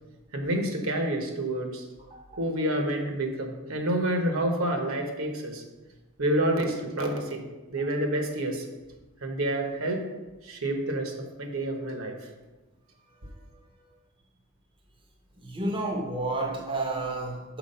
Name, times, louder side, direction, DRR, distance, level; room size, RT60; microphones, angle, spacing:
voice 1, 0.3-1.8 2.4-5.6 6.2-7.4 7.7-8.7 9.2-10.1 10.4-12.2, right 1 dB, 70° right, 4 dB, 1.1 m, -28 dB
voice 2, 2.0-2.4 7.8-7.9 15.4-17.6, right 2 dB, 25° right, 1 dB, 0.7 m, -31 dB
6.0 x 4.6 x 5.5 m, 1.2 s
head